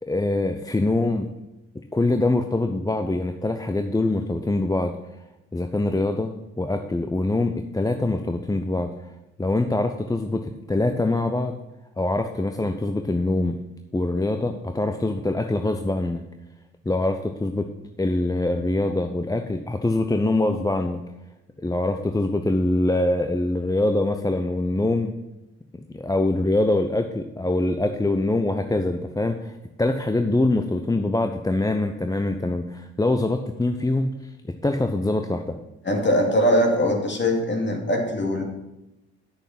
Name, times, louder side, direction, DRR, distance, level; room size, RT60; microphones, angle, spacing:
voice 1, 0.0-1.3 1.9-4.9 5.5-9.1 9.4-11.5 12.0-13.6 13.9-16.2 16.9-17.7 18.0-21.0 21.6-25.1 25.7-34.3 34.6-35.6, left 2 dB, 10° left, 6 dB, 0.7 m, -24 dB
voice 2, 35.8-38.4, equal, 35° left, 2 dB, 2.5 m, -21 dB
8.6 x 6.6 x 5.8 m, 0.94 s
hypercardioid pair, 45°, 34 cm